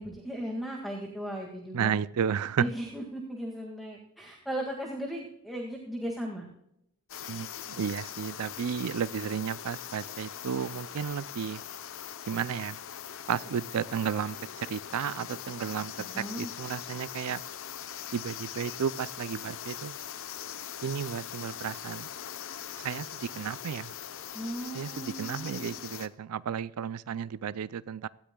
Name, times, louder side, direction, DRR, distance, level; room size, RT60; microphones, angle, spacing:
voice 1, 0.0-2.0 2.6-6.5 16.0-16.5 24.3-25.8, equal, ahead, -1 dB, 1.9 m, -37 dB
voice 2, 1.7-2.7 7.3-11.6 12.3-12.8 13.3-17.4 18.1-20.0 20.8-22.1 22.8-23.9 24.7-28.1, right 7 dB, 80° right, 18 dB, 0.4 m, -33 dB
sound 1, 7.1-26.1, left 9 dB, 60° left, 0.8 m, -41 dB
18.0 x 13.5 x 2.3 m, 0.77 s
head